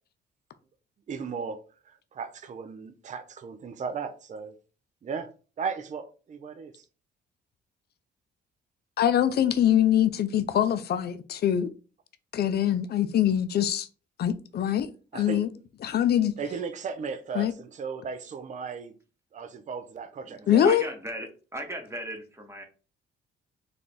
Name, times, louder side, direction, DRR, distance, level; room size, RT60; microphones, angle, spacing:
voice 1, 1.1-4.5 5.0-5.3 5.6-6.8 15.1-15.4 16.4-18.9 19.3-20.7, right 5 dB, 40° right, 0.5 m, -36 dB
voice 2, 9.0-11.7 12.3-13.9 14.2-14.9 15.1-15.5 15.8-16.3 17.3-17.5 20.5-20.8, left 10 dB, 55° left, 0.5 m, -23 dB
voice 3, 20.2-22.6, right 1 dB, 15° right, 0.9 m, -38 dB
3.4 x 2.3 x 4.0 m
cardioid pair, 90°, 20 cm